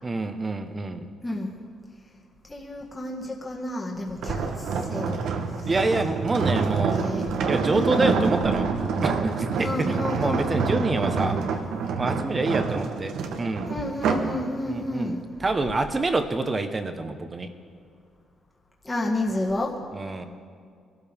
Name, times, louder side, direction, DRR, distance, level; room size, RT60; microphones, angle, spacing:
voice 1, 0.0-1.1 5.7-7.0 7.5-8.7 9.0-11.4 11.9-13.7 14.7-17.5 19.9-20.3, right 2 dB, 30° right, 7 dB, 1.1 m, -27 dB
voice 2, 1.2-1.6 2.5-5.3 5.6-5.7 6.5-6.6 6.9-7.3 7.6-8.2 9.6-10.7 13.3-15.2 18.8-19.7, left 1 dB, 20° left, -1 dB, 1.8 m, -31 dB
sound 1, 4.2-14.4 14.8-15.1, right 5 dB, 80° right, 1.2 m, -27 dB
21.5 x 13.0 x 3.7 m, 2.2 s
cardioid pair, 90°, 0 cm